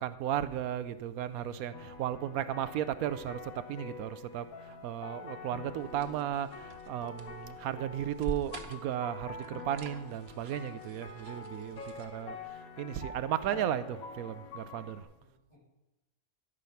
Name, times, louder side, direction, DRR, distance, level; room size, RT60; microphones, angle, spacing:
voice 1, 0.0-4.5 4.8-12.4 12.8-15.0, right 10 dB, 85° right, 14 dB, 1.1 m, -35 dB
voice 2, 1.3-2.0 14.5-14.9 15.2-15.6, left 1 dB, 50° left, -4 dB, 5.1 m, -57 dB
sound 1, 1.7-15.0, left 4 dB, 80° left, 1.5 m, -46 dB
sound 2, 5.8-12.5, right 5 dB, 50° right, 1.0 m, -47 dB
12.5 x 6.6 x 5.7 m, 1.0 s
omnidirectional pair, 1.5 m